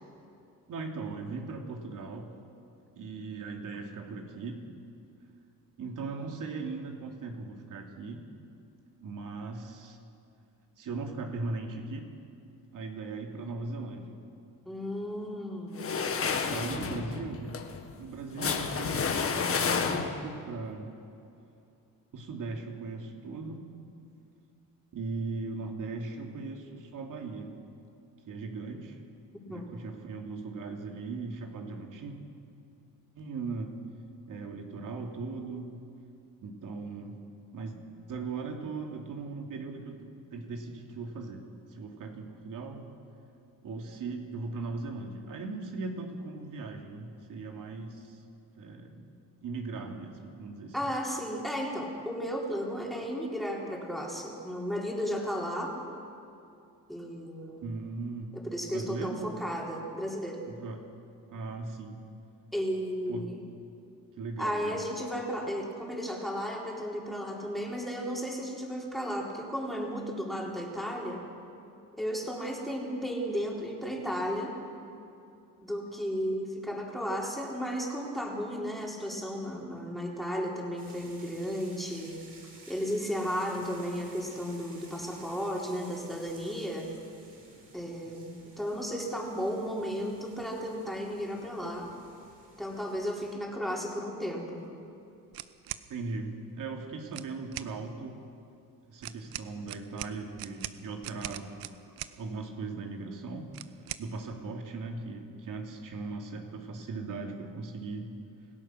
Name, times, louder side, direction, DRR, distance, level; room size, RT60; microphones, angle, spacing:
voice 1, 0.7-2.3 3.0-4.7 5.8-8.2 9.0-10.0 10.8-12.1 12.7-14.2 16.4-17.5 18.0-19.1 19.5-20.9 22.1-23.7 24.9-27.5 28.3-29.0 29.5-32.1 33.1-33.7 34.3-35.7 36.4-37.2 37.5-37.7 38.1-42.9 43.6-48.2 48.6-49.1 49.4-50.8 57.6-58.3 58.7-59.5 60.5-60.8 61.3-62.0 63.1-63.4 64.2-64.8 95.9-98.2 98.9-101.6 102.2-103.5 104.0-108.1, right 3 dB, 60° right, 2 dB, 3.1 m, -38 dB
voice 2, 14.6-16.1 29.5-29.6 50.7-55.8 56.9-57.7 58.3-60.4 62.5-63.4 64.4-71.2 71.9-74.6 75.6-82.2 82.7-86.9 87.7-91.9 92.6-94.6, equal, ahead, -2 dB, 4.0 m, -34 dB
sound 1, 15.8-20.4, left 5 dB, 40° left, 1.7 m, -30 dB
sound 2, 80.8-93.3, right 2 dB, 35° right, 6.6 m, -55 dB
sound 3, 95.3-95.9 97.1-97.7 99.0-102.2 103.5-104.1, right 14 dB, 85° right, 0.9 m, -41 dB
27.0 x 16.5 x 6.4 m, 2.6 s
cardioid pair, 120°, 35 cm